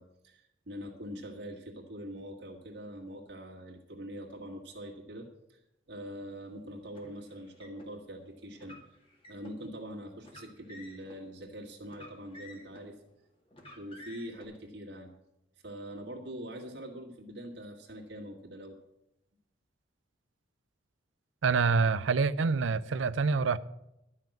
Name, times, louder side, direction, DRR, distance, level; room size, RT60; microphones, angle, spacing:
voice 1, 0.0-5.6 5.9-8.8 9.3-13.0 13.7-15.1 15.6-18.8, equal, 65° right, 1.7 m, -43 dB
Car, 6.9-7.9 8.5-9.6 10.2-11.2 11.8-12.9 13.5-14.4, left 1 dB, 30° left, 2.2 m, -52 dB
voice 2, 21.4-23.6, right 4 dB, 85° right, 0.5 m, -26 dB
12.0 x 5.7 x 8.9 m
head